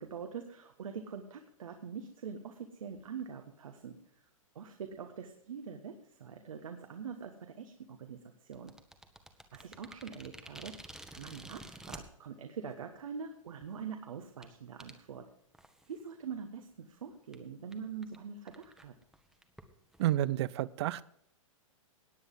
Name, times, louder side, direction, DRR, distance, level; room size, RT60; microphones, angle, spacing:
voice 1, 0.0-4.0 4.5-8.7 9.5-15.3 15.9-18.9, right 6 dB, 75° right, 5 dB, 1.4 m, -44 dB
sound 1, 8.5-12.0 12.8-12.9 13.5-13.7 14.4-14.5 14.8-14.9 15.5-16.0 16.3-16.4 16.8-16.9 17.3-17.4 17.7-17.8 18.0-18.2 18.5-20.1, right 1 dB, 5° right, 1.2 m, -50 dB
voice 2, 20.0-21.1, right 13 dB, 55° right, 20 dB, 0.5 m, -30 dB
18.0 x 8.2 x 3.8 m, 0.69 s
hypercardioid pair, 115°, 17 cm